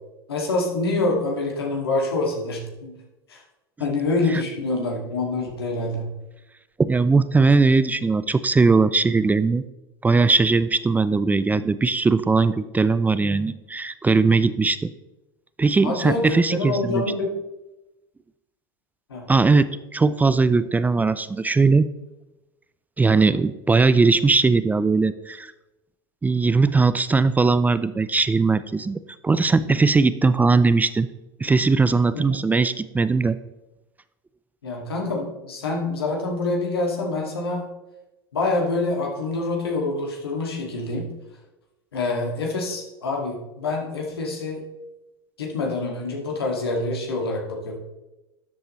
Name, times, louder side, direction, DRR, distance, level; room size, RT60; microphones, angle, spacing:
voice 1, 0.3-2.9 3.3-3.4 3.8-6.1 15.8-17.3 19.1-19.3 32.1-32.4 34.6-37.7 38.3-41.1 41.9-44.6 45.4-47.8, left 2 dB, 85° left, 0 dB, 2.3 m, -26 dB
voice 2, 6.8-9.6 10.0-14.9 15.6-17.0 19.3-21.9 23.0-25.5 26.2-31.1 31.4-33.4, right 4 dB, 15° right, 14 dB, 0.4 m, -19 dB
12.5 x 7.9 x 3.2 m, 1.0 s
hypercardioid pair, 85°, 13 cm